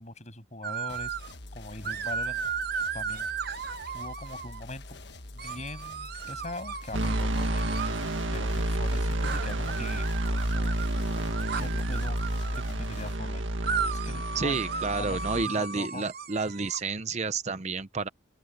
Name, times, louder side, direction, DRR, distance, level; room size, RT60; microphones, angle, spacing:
voice 1, 0.0-2.5 2.9-3.3 3.9-5.0 5.3-7.7 8.3-10.8 11.6-12.2 12.5-13.4 13.9-14.6 15.0-16.0, left 2 dB, 35° left, 7.7 m, -41 dB
sound 1, 0.6-1.3 1.8-4.6 5.4-8.0 9.2-12.7 13.6-16.8, right 6 dB, 50° right, 1.1 m, -35 dB
sound 2, 0.9-13.1, left 2 dB, 55° left, 1.5 m, -45 dB
sound 3, 6.9-15.5, right 1 dB, 75° right, 1.9 m, -30 dB
voice 2, 14.3-18.1, right 4 dB, 35° right, 0.6 m, -30 dB
open air
head